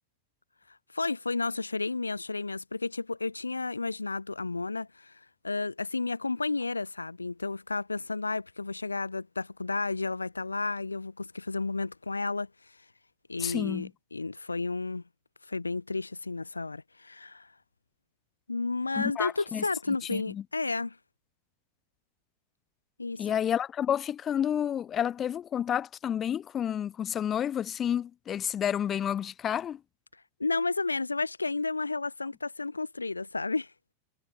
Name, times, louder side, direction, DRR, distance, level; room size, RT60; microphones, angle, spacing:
voice 1, 0.9-12.5 13.3-15.0 15.5-17.5 18.5-21.0 23.0-23.3 30.4-33.7, left 3 dB, 80° left, 0.6 m, -32 dB
voice 2, 13.4-13.9 19.0-19.6 20.1-20.4 23.2-29.8, left 9 dB, 25° left, 0.5 m, -30 dB
figure-of-eight pair, 90°, 0 cm